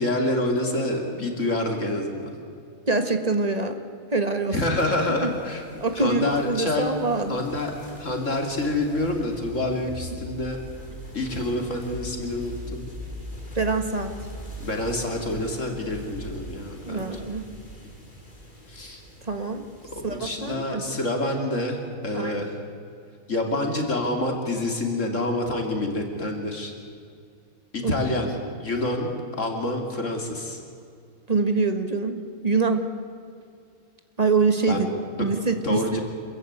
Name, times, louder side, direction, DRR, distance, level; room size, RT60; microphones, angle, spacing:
voice 1, 0.0-2.3 4.5-5.6 5.9-7.0 7.3-7.7 8.0-10.6 11.1-12.9 14.6-17.2 18.7-19.0 20.0-22.6 23.3-26.7 27.7-28.3 28.6-29.1 29.4-30.6 34.7-34.9 35.1-35.3 35.6-36.0, left 1 dB, 55° left, 2 dB, 3.1 m, -27 dB
voice 2, 2.9-3.8 4.1-4.6 5.2-5.3 5.8-7.4 13.5-14.1 16.8-17.5 19.3-19.7 20.0-20.8 22.1-22.4 27.8-27.9 31.3-32.9 34.2-34.9 35.2-36.0, right 3 dB, 25° right, 6 dB, 1.6 m, -24 dB
sound 1, 4.9-20.6, right 1 dB, 35° left, 3.4 m, -46 dB
sound 2, 8.3-16.3, left 1 dB, 55° right, 4.4 m, -41 dB
27.0 x 14.5 x 9.5 m, 2.3 s
omnidirectional pair, 1.5 m